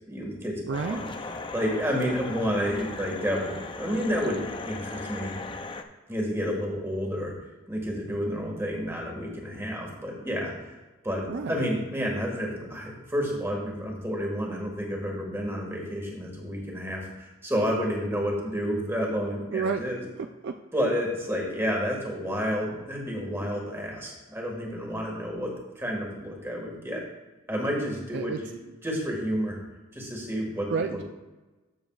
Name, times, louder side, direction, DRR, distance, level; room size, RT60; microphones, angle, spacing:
voice 1, 0.1-0.6 0.9-1.0 1.5-5.3 6.1-7.3 7.7-10.7 11.0-20.0 20.7-27.0 27.5-28.5 28.8-29.6 29.9-31.0, equal, 10° right, -1 dB, 1.7 m, -30 dB
sound 1, 0.7-5.8, left 3 dB, 25° left, 0.4 m, -38 dB
voice 2, 0.7-1.0 11.3-11.7 19.5-19.8 20.2-20.6 28.1-28.4 30.7-31.0, right 5 dB, 55° right, 6 dB, 0.3 m, -30 dB
13.5 x 7.1 x 2.4 m, 1.2 s
head